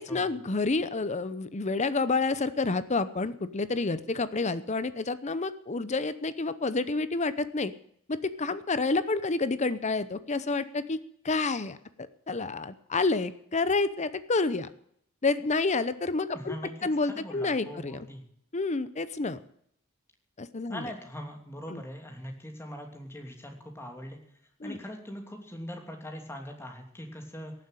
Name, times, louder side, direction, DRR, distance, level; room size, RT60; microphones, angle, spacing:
voice 1, 0.0-7.7 8.1-11.0 11.2-11.8 12.3-14.7 15.2-18.1 18.5-19.4 20.4-20.9 21.7-21.8 24.6-24.8, left 3 dB, 35° left, 14 dB, 0.7 m, -29 dB
voice 2, 16.3-18.2 20.7-24.2 24.6-27.5, equal, 10° left, 3 dB, 2.7 m, -41 dB
17.5 x 7.7 x 9.0 m, 0.70 s
head